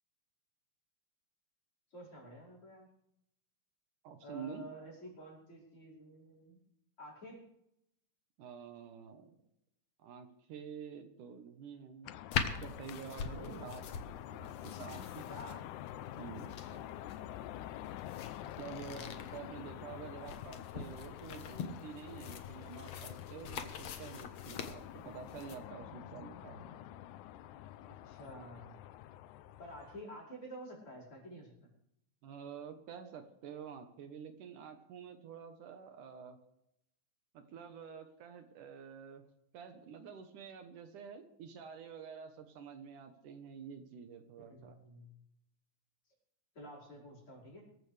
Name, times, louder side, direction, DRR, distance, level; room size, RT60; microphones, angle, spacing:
voice 1, 1.9-2.9 4.2-6.6 7.0-7.4 13.3-13.7 15.1-15.6 16.7-16.9 18.6-19.2 28.0-28.8 29.6-31.7 44.5-45.2 46.5-47.6, equal, 40° left, -2 dB, 5.9 m, -50 dB
voice 2, 4.0-4.7 8.4-9.4 10.0-13.9 14.3-15.1 16.2-16.6 18.4-26.8 32.2-36.4 37.3-39.2 39.5-44.8, right 7 dB, 70° right, 7 dB, 2.6 m, -49 dB
sound 1, 12.0-30.0, left 12 dB, 75° left, 2.0 m, -47 dB
sound 2, 12.3-25.6, left 6 dB, 60° left, 2.1 m, -43 dB
24.0 x 14.5 x 3.4 m, 0.80 s
omnidirectional pair, 3.8 m